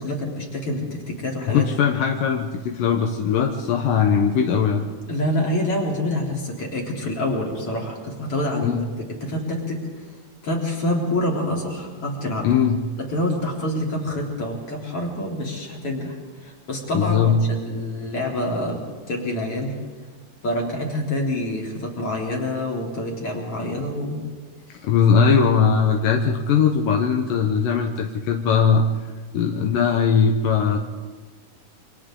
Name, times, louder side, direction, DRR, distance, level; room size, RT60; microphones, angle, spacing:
voice 1, 0.0-1.7 5.1-8.7 9.2-9.8 10.4-12.5 13.0-18.8 19.1-19.7 20.4-24.2 24.7-24.8, left 1 dB, 40° left, -2 dB, 4.3 m, -26 dB
voice 2, 1.5-4.9 8.6-8.8 12.4-12.8 16.9-17.4 24.8-28.8 29.3-30.8, left 6 dB, 80° left, 2 dB, 2.7 m, -19 dB
28.5 x 25.0 x 3.8 m, 1.4 s
omnidirectional pair, 3.8 m